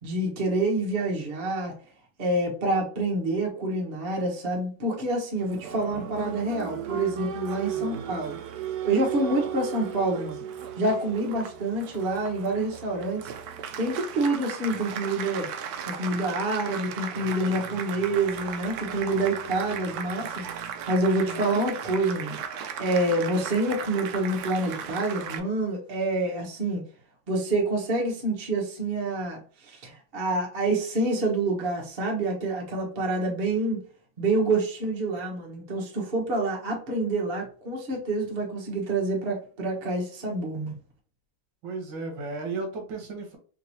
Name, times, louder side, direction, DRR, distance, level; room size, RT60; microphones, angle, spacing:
voice 1, 0.0-1.7 2.2-8.4 8.9-10.4 10.8-13.3 13.8-15.5 15.9-22.4 22.8-26.8 27.3-33.8 34.2-40.7, right 2 dB, 40° right, -1 dB, 0.9 m, -27 dB
Applause, 5.4-25.4, right 8 dB, 85° right, 0.8 m, -36 dB
voice 2, 21.1-21.6 41.6-43.4, right 3 dB, 70° right, 2 dB, 1.4 m, -35 dB
3.5 x 2.9 x 2.7 m, 0.41 s
omnidirectional pair, 2.2 m